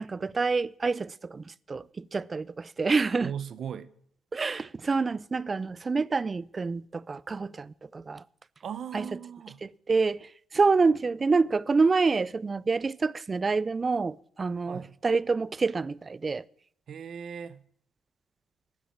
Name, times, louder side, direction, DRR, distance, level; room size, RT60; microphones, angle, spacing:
voice 1, 0.0-3.3 4.3-8.2 8.9-9.1 9.6-16.4, right 4 dB, 30° right, 0.4 m, -27 dB
voice 2, 3.2-3.9 8.6-9.6 14.7-15.0 16.9-17.7, right 8 dB, 60° right, 0.8 m, -38 dB
11.5 x 7.3 x 9.0 m
cardioid pair, 90°, 0 cm